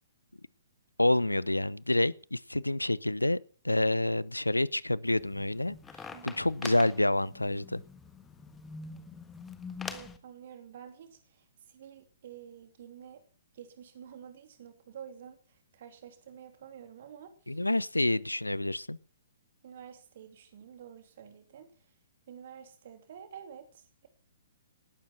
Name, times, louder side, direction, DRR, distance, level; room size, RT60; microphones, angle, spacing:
voice 1, 1.0-3.4 3.6-5.8 6.2-7.8 17.5-19.0, left 1 dB, 85° left, 0.8 m, -28 dB
sound 1, 5.0-10.2, left 5 dB, 10° left, 1.5 m, -44 dB
voice 2, 9.9-13.2 13.5-17.6 19.6-21.9 22.3-24.1, right 8 dB, 45° right, 2.9 m, -49 dB
19.5 x 11.5 x 5.8 m
figure-of-eight pair, 120°, 0 cm